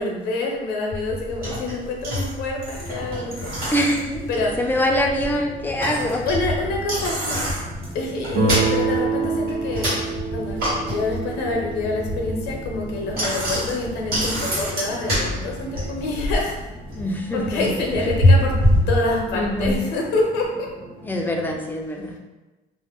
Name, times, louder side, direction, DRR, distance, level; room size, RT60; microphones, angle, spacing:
voice 1, 0.0-3.5 4.3-4.5 6.3-7.6 7.9-10.0 10.3-16.6 17.3-18.6 18.9-20.7, left 2 dB, 85° left, 0 dB, 0.6 m, -26 dB
Bicycle, 0.9-19.8, equal, 65° right, 1.3 m, -26 dB
sound 1, 2.7-21.6, right 1 dB, 10° right, 0.7 m, -42 dB
voice 2, 3.7-6.3 16.9-17.7 18.0-18.1 19.4-19.8 21.0-22.2, equal, 10° left, 1 dB, 0.4 m, -24 dB
Guitar, 8.3-13.1, right 4 dB, 80° right, 0.8 m, -27 dB
2.4 x 2.0 x 3.4 m, 1.1 s
cardioid pair, 110°, 17 cm